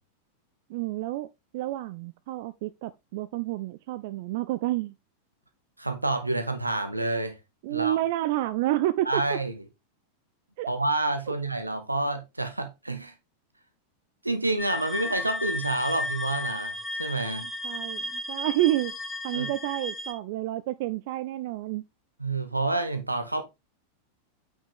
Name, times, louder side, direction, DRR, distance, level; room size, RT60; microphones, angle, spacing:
voice 1, 0.7-1.3 1.5-4.9 7.6-9.2 10.6-10.7 17.6-19.0 19.2-21.8, right 15 dB, 50° right, 0.4 m, -29 dB
voice 2, 5.8-7.4 7.7-8.0 9.1-9.5 10.7-13.1 14.2-17.5 19.3-19.5 22.2-23.4, right 2 dB, 85° right, 1.3 m, -28 dB
sound 1, 14.6-20.1, left 2 dB, 10° left, 1.7 m, -34 dB
8.8 x 5.5 x 3.6 m
figure-of-eight pair, 90°, 0 cm